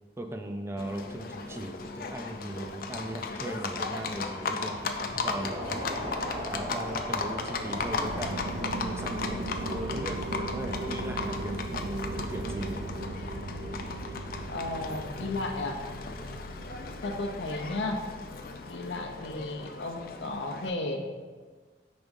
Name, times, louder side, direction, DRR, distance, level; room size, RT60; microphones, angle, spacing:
voice 1, 0.2-5.8 6.4-8.5 8.8-12.9, right 1 dB, 15° right, 4 dB, 0.3 m, -38 dB
Livestock farm animals working animals, 0.8-20.7, left 4 dB, 50° left, 0.4 m, -36 dB
Crowd, 4.9-10.1, equal, 45° right, 1.0 m, -39 dB
sound 1, 7.6-17.5, right 2 dB, 80° right, 0.5 m, -37 dB
voice 2, 14.5-15.8 17.0-18.0 18.7-21.1, left 2 dB, 85° left, 4 dB, 0.7 m, -34 dB
5.1 x 3.5 x 5.3 m, 1.4 s
head